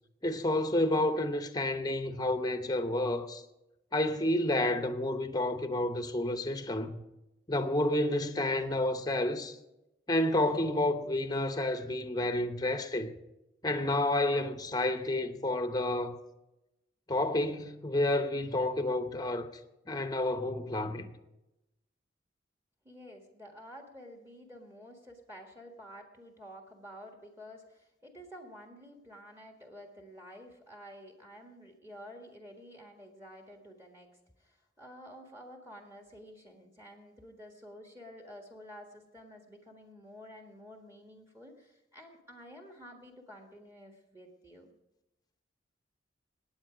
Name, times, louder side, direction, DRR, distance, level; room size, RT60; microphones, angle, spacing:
voice 1, 0.2-3.4 3.9-7.0 7.5-9.6 10.1-13.1 13.6-16.2 17.1-19.5 19.9-21.1, left 1 dB, 20° left, 0.8 m, -30 dB
voice 2, 22.8-34.1 34.4-44.7, equal, 15° right, 1.5 m, -50 dB
17.5 x 8.8 x 5.0 m
head